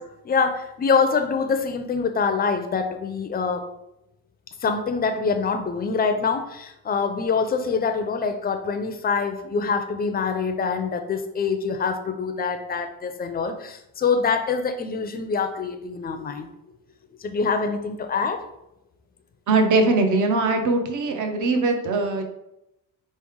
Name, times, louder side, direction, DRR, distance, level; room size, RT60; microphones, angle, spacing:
voice 1, 0.2-3.7 4.6-16.5 17.2-18.4, left 5 dB, 25° left, 7 dB, 0.4 m, -25 dB
voice 2, 19.5-22.2, right 3 dB, 55° right, 5 dB, 0.7 m, -21 dB
4.5 x 3.1 x 3.5 m, 0.86 s
cardioid pair, 150°, 35 cm